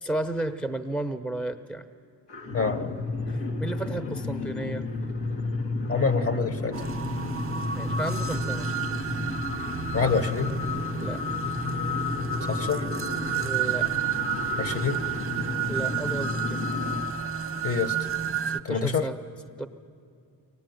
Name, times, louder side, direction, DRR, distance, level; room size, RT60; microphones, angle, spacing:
voice 1, 0.0-1.8 3.6-4.9 7.7-8.7 10.9-11.2 13.4-13.9 15.7-16.6 18.5-19.2 19.6-19.7, right 2 dB, 5° left, 9 dB, 0.9 m, -33 dB
sound 1, 2.3-17.0, left 2 dB, 85° left, 1.9 m, -32 dB
voice 2, 2.5-3.0 5.9-6.8 9.9-10.5 12.5-12.9 14.6-15.0 17.6-18.0 18.6-19.0, left 5 dB, 35° left, 10 dB, 1.2 m, -26 dB
sound 2, 6.7-18.6, right 5 dB, 30° right, 0.9 m, -31 dB
23.0 x 19.0 x 9.4 m, 2.4 s
cardioid pair, 100°, 42 cm